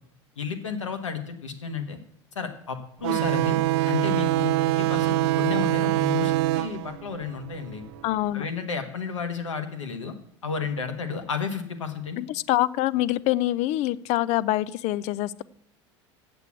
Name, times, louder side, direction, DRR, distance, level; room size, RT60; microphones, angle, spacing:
voice 1, 0.4-2.0 2.3-3.6 3.9-7.8 8.3-10.1 10.4-12.2, left 6 dB, 85° left, 7 dB, 1.4 m, -32 dB
sound 1, 3.0-8.2, right 16 dB, 60° right, 0.4 m, -24 dB
voice 2, 8.0-8.5 12.2-15.4, left 15 dB, 45° left, 20 dB, 0.4 m, -25 dB
8.1 x 6.9 x 8.4 m, 0.68 s
hypercardioid pair, 80°, 15 cm